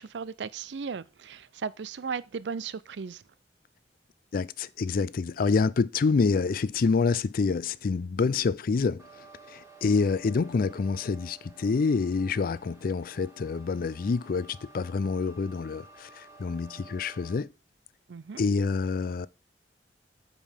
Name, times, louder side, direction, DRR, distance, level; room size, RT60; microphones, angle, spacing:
voice 1, 0.0-3.2 18.1-18.4, right 5 dB, 85° right, 0.5 m, -36 dB
voice 2, 4.3-9.0 9.5-17.5 18.4-19.3, left 4 dB, 55° left, 0.4 m, -27 dB
sound 1, 9.0-17.4, right 3 dB, 20° right, 1.5 m, -52 dB
7.4 x 5.1 x 5.1 m
head